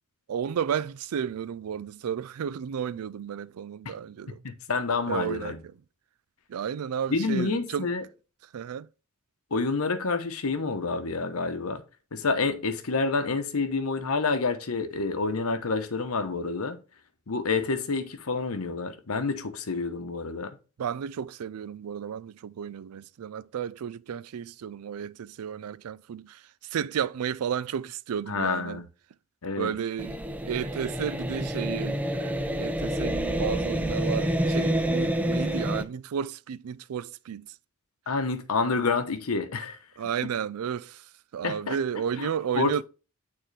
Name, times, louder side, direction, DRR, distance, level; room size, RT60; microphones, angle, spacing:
voice 1, 0.3-4.4 5.1-5.6 6.5-7.9 8.5-8.9 20.8-26.4 26.7-28.8 29.6-30.2 30.5-37.5 40.0-41.0 41.3-42.8, right 8 dB, 90° right, 0.4 m, -32 dB
voice 2, 4.4-5.6 7.1-8.0 9.5-11.8 12.1-16.8 17.3-20.6 28.3-28.8 29.4-29.7 38.1-39.8 41.4-41.8 42.2-42.3 42.6-42.8, left 4 dB, 85° left, 0.9 m, -28 dB
sound 1, 30.0-35.8, equal, 5° right, 0.4 m, -28 dB
8.9 x 3.8 x 3.2 m
head